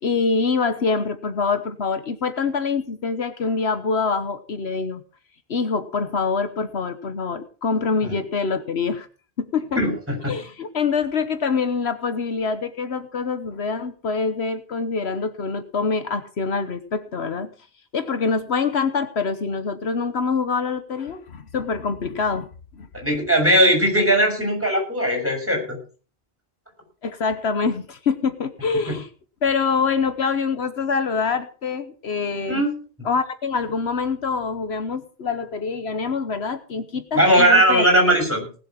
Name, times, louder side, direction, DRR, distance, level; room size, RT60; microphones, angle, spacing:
voice 1, 0.0-5.0 5.5-9.1 9.4-9.8 10.3-17.5 17.9-22.9 27.0-29.1 29.4-32.6 33.0-37.8, left 5 dB, 75° left, 10 dB, 1.4 m, -25 dB
voice 2, 9.8-10.3 22.9-25.8 28.9-29.0 32.5-32.8 37.1-38.5, right 1 dB, 10° right, 1 dB, 6.4 m, -18 dB
19.0 x 7.9 x 5.9 m, 0.38 s
omnidirectional pair, 1.1 m